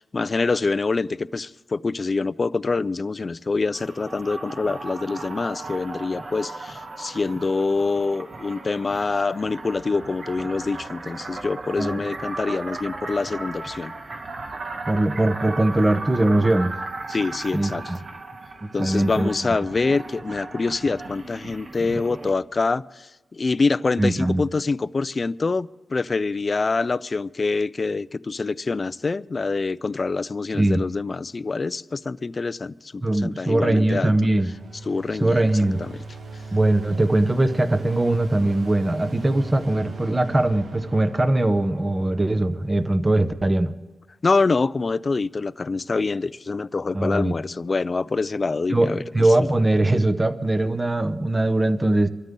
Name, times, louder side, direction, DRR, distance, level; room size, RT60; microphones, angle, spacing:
voice 1, 0.0-13.9 17.1-17.8 18.7-34.1 34.9-35.4 35.8-35.9 44.2-49.3, left 3 dB, 40° left, 0.4 m, -25 dB
sound 1, 3.7-22.3, right 3 dB, 55° right, 1.6 m, -36 dB
voice 2, 14.9-16.7 17.5-17.7 18.6-19.3 21.9-22.3 24.0-24.4 30.5-30.8 33.0-34.5 35.2-35.8 36.5-43.7 46.9-47.3 48.7-52.1, right 1 dB, 20° right, 0.9 m, -21 dB
sound 2, 33.7-43.7, right 3 dB, 80° right, 1.6 m, -39 dB
25.0 x 13.0 x 3.8 m
wide cardioid pair, 100°, 0 cm